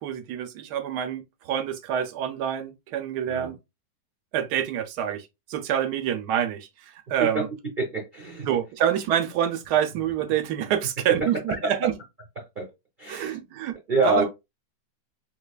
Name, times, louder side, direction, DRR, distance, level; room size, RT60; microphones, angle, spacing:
voice 1, 0.0-3.6 4.3-7.5 8.5-12.0 13.1-13.8 14.0-14.2, right 10 dB, 75° right, 1.2 m, -27 dB
voice 2, 7.8-8.5 12.6-12.7 13.0-13.3 13.9-14.2, right 3 dB, 40° right, 0.8 m, -25 dB
3.9 x 2.9 x 2.3 m
omnidirectional pair, 1.8 m